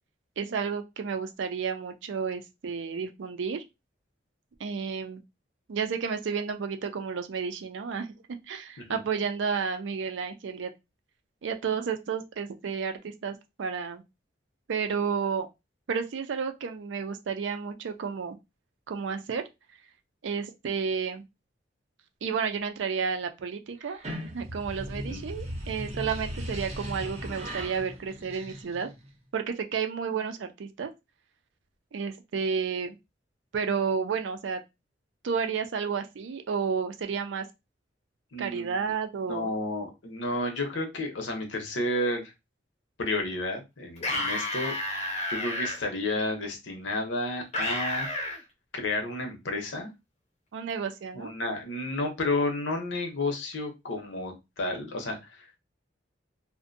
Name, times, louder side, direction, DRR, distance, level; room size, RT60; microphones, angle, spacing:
voice 1, 0.4-3.6 4.6-5.2 5.7-8.1 8.5-10.7 11.4-14.0 14.7-15.5 15.9-18.4 18.9-19.4 20.2-21.2 22.2-28.9 29.3-30.9 31.9-33.0 33.5-34.6 35.2-37.5 38.4-39.5 50.5-51.3, right 6 dB, 80° right, 0.4 m, -31 dB
sound 1, 23.8-29.1, equal, 35° right, 0.6 m, -38 dB
voice 2, 38.3-38.9 39.3-42.3 43.0-44.7 45.3-48.1 48.7-49.9 51.1-55.2, left 2 dB, 85° left, 0.8 m, -31 dB
sound 2, 44.0-45.8 47.5-48.4, left 1 dB, 35° left, 0.6 m, -30 dB
2.5 x 2.1 x 2.5 m
head